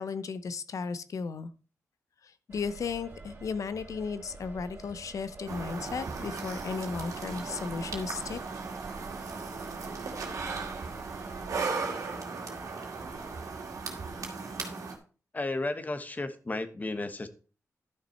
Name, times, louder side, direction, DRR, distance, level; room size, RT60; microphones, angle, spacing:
voice 1, 0.0-1.5 2.2-8.4, left 5 dB, 70° left, 14 dB, 0.8 m, -35 dB
sound 1, 2.5-11.5, right 3 dB, 40° right, 2.4 m, -48 dB
sound 2, 5.5-15.0, right 4 dB, 80° right, 2.1 m, -37 dB
voice 2, 15.3-17.3, left 2 dB, 30° left, 10 dB, 1.1 m, -33 dB
11.5 x 6.0 x 4.3 m, 0.38 s
wide cardioid pair, 90°, 6 cm